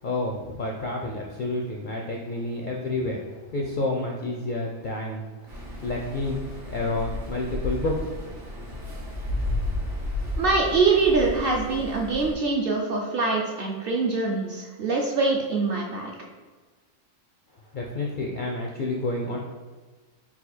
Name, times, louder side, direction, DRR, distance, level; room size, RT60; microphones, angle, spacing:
voice 1, 0.0-8.3 17.7-19.4, left 2 dB, 65° left, -1 dB, 0.5 m, -30 dB
sound 1, 5.5-12.3, left 1 dB, 80° right, 1.6 m, -32 dB
voice 2, 10.4-16.1, right 3 dB, 60° right, -1 dB, 0.6 m, -24 dB
4.2 x 2.4 x 4.1 m, 1.3 s
omnidirectional pair, 1.4 m